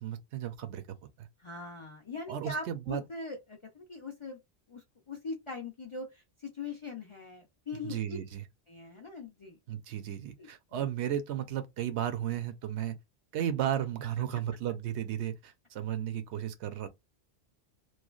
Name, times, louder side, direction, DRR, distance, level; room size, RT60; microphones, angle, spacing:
voice 1, 0.0-1.3 2.3-3.0 7.8-8.4 9.7-12.9 13.3-16.9, right 10 dB, 85° right, 0.9 m, -34 dB
voice 2, 1.4-4.4 4.7-8.2 8.7-9.6 10.4-10.5 10.8-10.9, left 3 dB, 45° left, 0.4 m, -41 dB
3.1 x 2.2 x 2.3 m
omnidirectional pair, 1.1 m